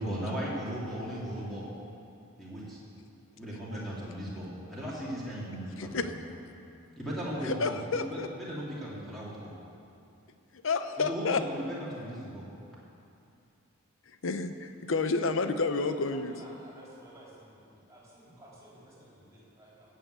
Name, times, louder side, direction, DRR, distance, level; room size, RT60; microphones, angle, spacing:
voice 1, 0.0-1.6 2.4-2.8 3.4-6.1 7.0-9.5 11.1-12.4, equal, ahead, -9 dB, 2.8 m, -37 dB
voice 2, 5.8-6.1 7.4-8.3 10.6-11.4 14.2-16.3, left 4 dB, 65° left, 9 dB, 0.7 m, -30 dB
voice 3, 15.6-20.0, right 1 dB, 15° right, -6 dB, 3.8 m, -53 dB
16.5 x 6.5 x 8.1 m, 2.6 s
head